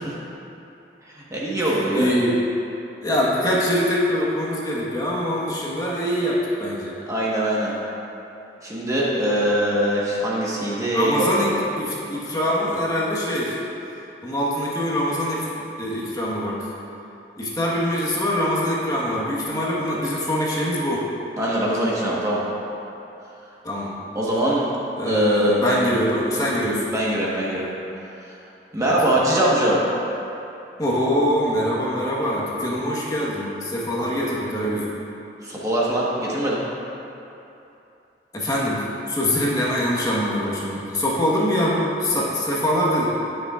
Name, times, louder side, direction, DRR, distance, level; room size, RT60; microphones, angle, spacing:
voice 1, 1.1-2.1 7.1-7.7 8.6-11.3 21.4-22.4 24.1-24.7 25.0-25.8 26.9-27.7 28.7-29.8 35.4-36.6, right 1 dB, 20° right, -6 dB, 1.3 m, -22 dB
voice 2, 1.6-2.3 3.0-7.0 10.9-13.6 14.2-15.5 15.8-16.7 17.4-21.0 23.6-23.9 25.0-26.9 28.8-28.9 30.8-34.9 38.3-43.1, equal, 20° left, -6 dB, 1.3 m, -23 dB
18.0 x 6.6 x 2.5 m, 2.9 s
head